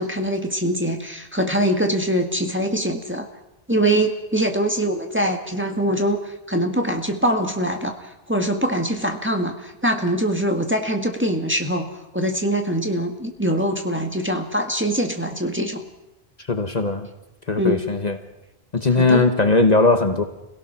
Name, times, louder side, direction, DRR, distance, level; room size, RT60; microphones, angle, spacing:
voice 1, 0.0-3.3 3.7-8.0 8.3-11.9 12.1-15.8 17.6-17.8 19.0-19.2, right 1 dB, 10° right, 3 dB, 1.8 m, -23 dB
voice 2, 16.5-17.1 17.5-18.1 18.7-20.2, left 3 dB, 45° left, 7 dB, 1.3 m, -18 dB
27.0 x 17.0 x 6.0 m, 0.89 s
omnidirectional pair, 1.0 m